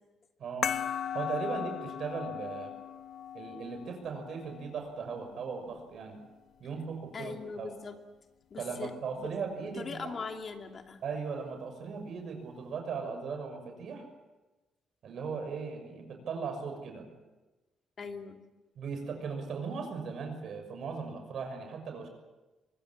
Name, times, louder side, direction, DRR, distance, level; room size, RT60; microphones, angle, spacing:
voice 1, 0.4-0.7 1.1-2.7 3.3-6.2 6.6-7.7 8.6-10.2 11.0-14.0 15.0-17.1 18.7-22.1, right 5 dB, 65° right, 5 dB, 6.3 m, -38 dB
sound 1, 0.6-5.7, left 9 dB, 60° left, 0.9 m, -38 dB
voice 2, 7.1-8.0 8.5-8.9 9.2-9.3 9.8-11.0 18.0-18.4, left 5 dB, 45° left, 4 dB, 2.8 m, -40 dB
24.0 x 21.0 x 7.4 m, 1.1 s
cardioid pair, 90°, 0 cm